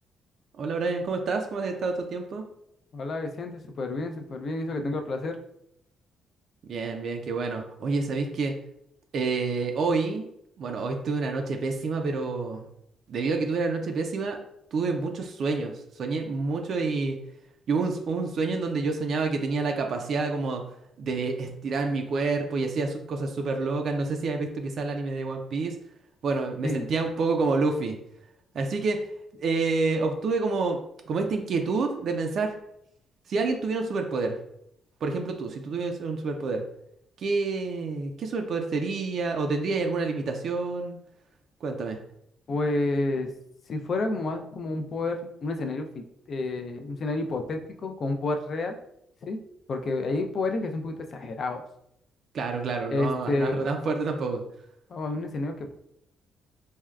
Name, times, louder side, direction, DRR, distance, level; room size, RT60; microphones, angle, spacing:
voice 1, 0.6-2.4 6.7-8.6 9.1-10.3 10.6-12.7 13.1-14.4 14.7-17.2 17.7-20.6 21.0-25.8 26.2-28.0 28.5-29.0 29.4-30.8 31.1-32.5 33.3-34.4 35.0-36.6 37.2-41.0 41.6-42.0 52.3-54.4, right 3 dB, 60° right, 3 dB, 0.3 m, -28 dB
voice 2, 2.9-5.4 26.6-26.9 42.5-43.3 43.7-48.8 49.2-49.4 49.7-51.6 52.9-53.7 54.9-55.7, left 2 dB, 50° left, 6 dB, 0.4 m, -30 dB
3.4 x 2.2 x 2.3 m, 0.74 s
cardioid pair, 90°, 0 cm